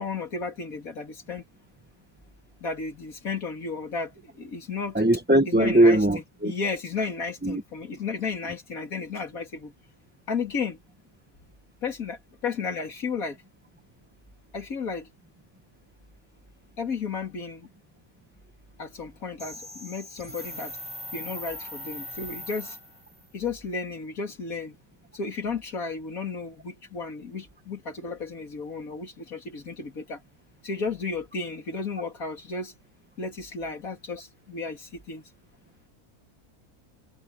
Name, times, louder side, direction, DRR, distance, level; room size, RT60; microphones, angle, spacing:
voice 1, 0.0-1.4 2.6-5.0 5.5-6.0 6.4-9.7 10.3-10.8 11.8-13.4 14.5-15.1 16.8-17.7 18.8-20.8 21.1-22.8 23.3-24.8 25.1-30.2 30.6-32.7 33.2-35.2, left 4 dB, 65° left, 3.1 m, -33 dB
voice 2, 4.9-6.5 7.4-7.6, right 1 dB, 10° right, 0.9 m, -20 dB
sound 1, 19.4-23.3, left 1 dB, 15° left, 4.3 m, -40 dB
omnidirectional pair, 1.6 m